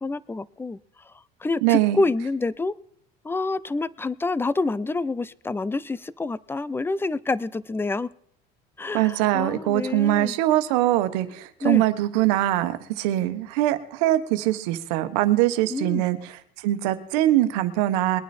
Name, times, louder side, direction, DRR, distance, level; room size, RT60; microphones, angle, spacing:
voice 1, 0.0-0.8 1.0-2.8 3.2-8.1 8.8-10.4 11.6-11.9 15.7-16.1, left 3 dB, 10° left, 20 dB, 0.5 m, -27 dB
voice 2, 1.6-2.0 8.9-16.2 16.6-18.2, right 14 dB, 85° right, 11 dB, 1.2 m, -22 dB
21.5 x 9.4 x 4.3 m, 0.69 s
supercardioid pair, 100°, 20 cm